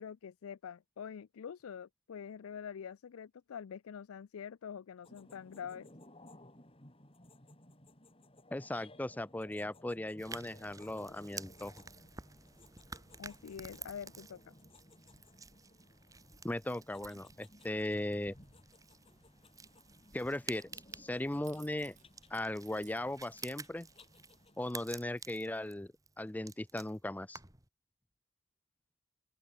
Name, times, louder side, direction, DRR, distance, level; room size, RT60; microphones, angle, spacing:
voice 1, 0.0-5.9 13.2-14.5, left 7 dB, 90° left, 0.4 m, -45 dB
sound 1, 5.0-24.9, left 1 dB, 25° left, 5.0 m, -60 dB
voice 2, 8.5-11.7 16.4-18.4 20.1-22.0 22.3-23.9 24.6-25.9 26.2-27.4, left 1 dB, 10° left, 0.4 m, -38 dB
sound 2, 10.2-27.7, right 4 dB, 15° right, 2.7 m, -51 dB
sound 3, 19.0-24.0, right 10 dB, 35° right, 1.8 m, -65 dB
open air
head